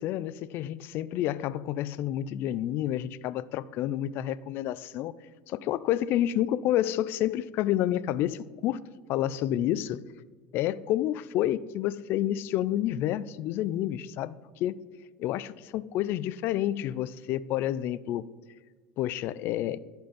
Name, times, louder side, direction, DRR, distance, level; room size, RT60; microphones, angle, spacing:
voice 1, 0.0-5.1 5.5-8.8 9.1-10.0 10.5-14.8 15.2-18.3 19.0-19.8, left 12 dB, 55° left, 0.3 m, -29 dB
11.0 x 4.4 x 5.2 m
supercardioid pair, 125°, 5 cm